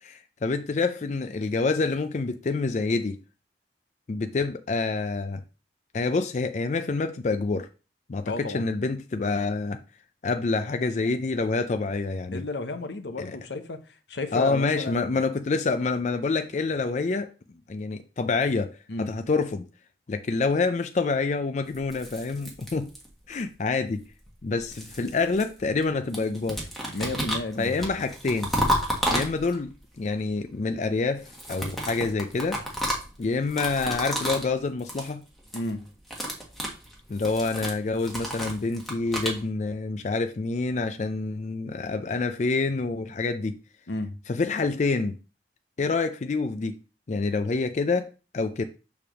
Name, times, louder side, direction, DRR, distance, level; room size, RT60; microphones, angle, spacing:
voice 1, 0.0-3.2 4.1-5.4 5.9-7.7 8.1-9.8 10.2-12.4 13.2-13.4 14.3-17.3 17.7-19.7 20.1-22.9 23.3-24.0 24.4-26.7 27.6-28.5 29.1-32.6 33.2-35.2 37.1-43.6 44.3-45.2 45.8-46.8 47.1-48.6, left 3 dB, 40° left, 0.4 m, -27 dB
voice 2, 8.3-8.6 12.3-15.2 18.9-19.1 26.9-27.8 35.5-35.8 43.9-44.1, left 2 dB, 80° left, 0.9 m, -32 dB
sound 1, 21.7-23.3 24.2-25.8 26.1-29.8 31.2-34.5 34.8-35.1 35.4-35.7 36.0-39.4, equal, ahead, 1.6 m, -32 dB
6.8 x 3.5 x 6.1 m
head